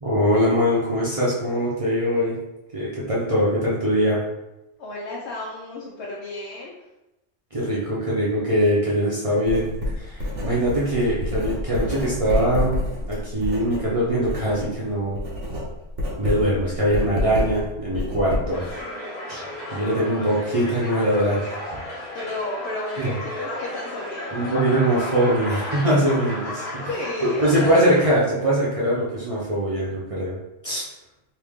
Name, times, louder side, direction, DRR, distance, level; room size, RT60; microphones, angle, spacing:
voice 1, 0.0-2.3 2.7-4.2 7.5-9.7 10.0-12.8 13.1-15.2 16.2-18.6 19.3-21.6 23.0-23.1 24.3-26.6 27.4-30.4 30.6-30.8, equal, 35° right, -7 dB, 0.6 m, -22 dB
voice 2, 4.8-6.7 22.1-24.3 26.8-27.7, left 2 dB, 65° left, -5 dB, 1.0 m, -32 dB
Writing, 9.5-14.7 15.0-18.7, left 1 dB, 85° right, 1.4 m, -28 dB
sound 1, 18.5-28.2, left 1 dB, 40° left, 0.9 m, -34 dB
3.3 x 2.6 x 3.6 m, 0.95 s
omnidirectional pair, 1.2 m